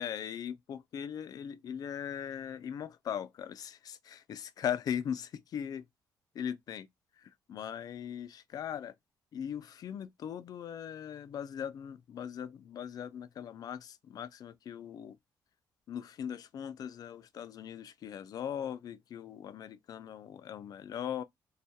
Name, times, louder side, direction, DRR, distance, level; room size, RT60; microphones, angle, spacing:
voice 1, 0.0-5.9 6.3-6.9 7.2-8.9 9.3-15.2 15.9-21.2, left 9 dB, 55° left, 0.3 m, -39 dB
2.3 x 2.1 x 2.6 m
cardioid pair, 95°, 8 cm